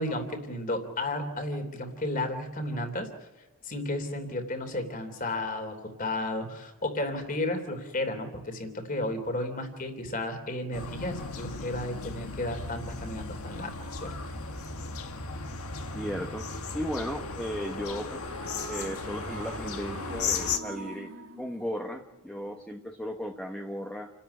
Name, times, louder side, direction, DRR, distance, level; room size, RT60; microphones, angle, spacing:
voice 1, 0.0-3.1 3.6-14.2, left 1 dB, 40° left, 7 dB, 3.1 m, -33 dB
sound 1, 10.7-20.6, left 4 dB, 80° left, 1.9 m, -36 dB
voice 2, 15.9-16.5 16.7-18.4 18.7-21.1 21.4-24.1, equal, 5° left, 3 dB, 1.1 m, -36 dB
sound 2, 18.1-22.6, right 3 dB, 75° right, 3.8 m, -44 dB
29.0 x 13.0 x 10.0 m, 1.1 s
head